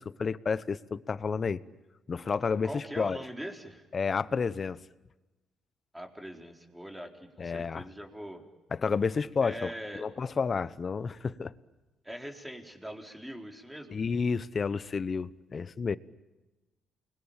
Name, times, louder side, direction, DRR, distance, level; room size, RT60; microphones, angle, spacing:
voice 1, 0.0-1.6 2.1-3.2 3.9-4.8 7.4-7.8 8.7-11.5 13.9-16.0, left 5 dB, 40° left, 0.9 m, -31 dB
voice 2, 2.6-3.8 5.9-8.4 9.4-10.1 12.0-14.0, equal, 5° right, 4.1 m, -42 dB
29.0 x 22.0 x 8.9 m
cardioid pair, 90°, 0 cm